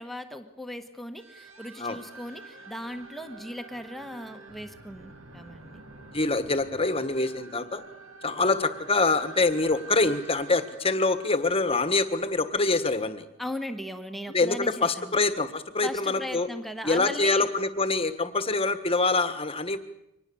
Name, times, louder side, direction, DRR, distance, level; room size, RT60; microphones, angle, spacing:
voice 1, 0.0-5.8 13.4-15.2 15.8-17.5, left 1 dB, ahead, 6 dB, 1.4 m, -38 dB
sound 1, 1.2-12.4, right 3 dB, 60° right, 1.8 m, -48 dB
voice 2, 6.1-7.8 8.2-13.3 14.3-16.5 16.8-19.8, left 3 dB, 25° left, 11 dB, 1.4 m, -25 dB
24.5 x 20.0 x 7.1 m, 0.84 s
head